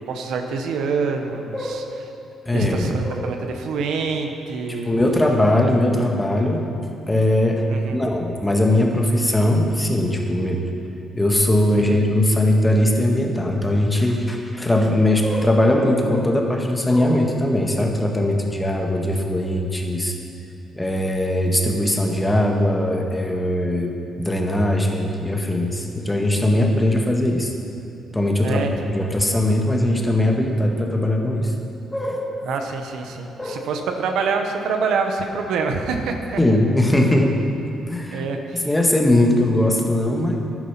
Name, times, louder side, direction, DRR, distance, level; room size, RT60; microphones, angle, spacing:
voice 1, 0.0-1.8 2.5-4.9 7.7-8.0 11.7-12.0 28.4-28.7 32.5-36.4 38.1-38.7, right 4 dB, 80° right, 4 dB, 1.0 m, -26 dB
voice 2, 1.5-1.9 2.4-3.3 4.7-6.7 7.1-10.7 11.1-20.2 20.7-27.5 28.1-31.5 31.9-32.4 33.4-33.6 36.4-37.4 37.9-40.4, left 1 dB, 10° left, 1 dB, 1.6 m, -20 dB
11.5 x 9.4 x 5.9 m, 2.6 s
cardioid pair, 90°, 0 cm